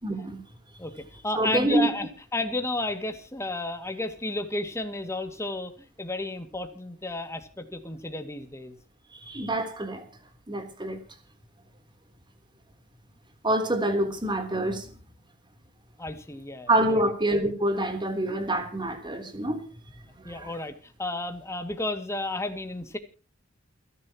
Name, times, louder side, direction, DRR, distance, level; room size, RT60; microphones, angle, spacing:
voice 1, 0.0-0.4 1.4-1.9 9.2-10.1 10.5-11.0 13.4-14.9 16.7-19.6 20.2-20.5, right 1 dB, 25° right, 6 dB, 3.5 m, -26 dB
voice 2, 0.8-8.8 16.0-17.1 20.2-23.0, left 2 dB, 15° left, 7 dB, 2.2 m, -32 dB
29.0 x 11.0 x 3.0 m, 0.36 s
head